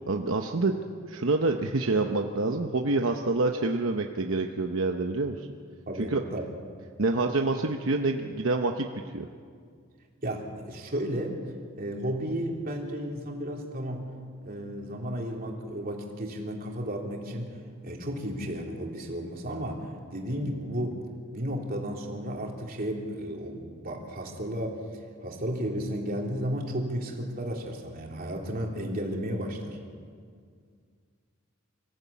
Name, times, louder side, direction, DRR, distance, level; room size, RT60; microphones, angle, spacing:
voice 1, 0.1-0.8 1.1-5.5 6.0-6.2 7.0-8.9 9.1-9.3, right 3 dB, 75° right, 4 dB, 0.9 m, -27 dB
voice 2, 5.9-6.4 10.2-11.4 11.8-14.1 14.4-17.6 17.8-21.0 21.3-24.8 25.2-29.8, equal, 45° right, 0 dB, 3.2 m, -33 dB
25.0 x 15.0 x 8.4 m, 2.1 s
head